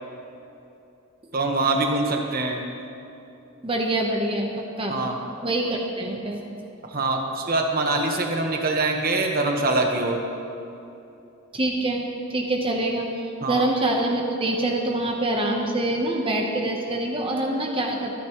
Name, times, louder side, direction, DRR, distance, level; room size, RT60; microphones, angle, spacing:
voice 1, 1.3-2.6 4.9-5.2 6.9-10.2 13.4-13.6, right 2 dB, 45° right, 2 dB, 1.4 m, -24 dB
voice 2, 3.6-5.0 5.4-6.4 11.5-12.0 12.3-13.1 13.5-18.1, right 1 dB, 25° right, 1 dB, 1.0 m, -25 dB
25.0 x 10.0 x 3.1 m, 2.8 s
head